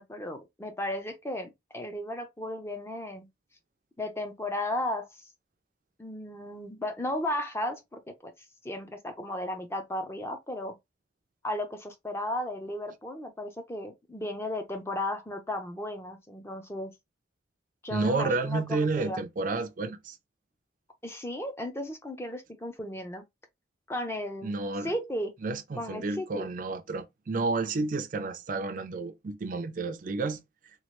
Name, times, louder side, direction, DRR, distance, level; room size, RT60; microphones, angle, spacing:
voice 1, 0.0-3.3 4.0-5.3 6.0-8.3 8.6-10.8 11.4-16.9 17.8-19.2 21.0-23.2 23.9-24.5 24.8-25.3 25.8-26.5, left 1 dB, 15° left, 0.5 m, -35 dB
voice 2, 17.9-20.2 24.4-24.9 25.4-30.4, right 3 dB, 45° right, 0.4 m, -31 dB
3.0 x 2.4 x 3.0 m
head